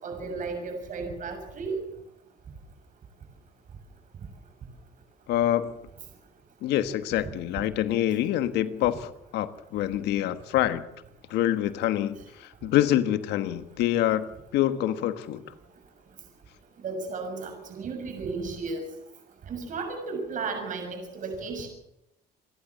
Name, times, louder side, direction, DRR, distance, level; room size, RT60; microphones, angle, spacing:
voice 1, 0.0-1.8 8.8-8.9 16.8-18.8 19.5-21.7, right 4 dB, 50° right, 4 dB, 6.6 m, -34 dB
voice 2, 5.3-5.7 6.6-10.8 11.3-14.2 14.5-15.4, left 12 dB, 85° left, 12 dB, 1.4 m, -26 dB
28.0 x 12.0 x 8.4 m, 0.84 s
cardioid pair, 110°, 17 cm